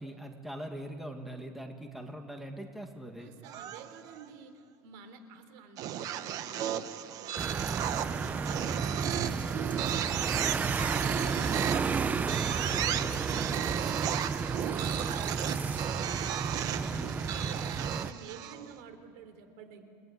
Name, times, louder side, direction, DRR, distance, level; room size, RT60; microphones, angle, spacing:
voice 1, 0.0-3.3 12.9-13.2 16.8-17.1, right 1 dB, ahead, 4 dB, 2.1 m, -42 dB
voice 2, 3.2-6.9 7.2-16.2 16.5-19.8, right 6 dB, 75° right, 9 dB, 3.5 m, -50 dB
sound 1, 3.4-4.2 5.8-18.7, right 10 dB, 50° right, 1.3 m, -35 dB
sound 2, 7.4-18.1, right 5 dB, 20° right, 0.7 m, -32 dB
29.5 x 20.0 x 9.7 m, 2.5 s
cardioid pair, 150°, 8 cm